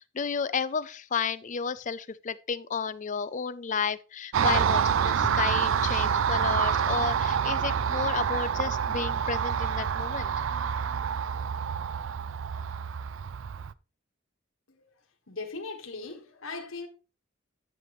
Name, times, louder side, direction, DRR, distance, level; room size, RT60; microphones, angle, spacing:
voice 1, 0.1-10.3, left 6 dB, 40° left, 0.5 m, -32 dB
Car passing by, 4.3-13.7, right 7 dB, 70° right, 0.4 m, -27 dB
voice 2, 15.3-16.9, left 3 dB, 80° left, 1.6 m, -39 dB
10.0 x 7.5 x 3.1 m
head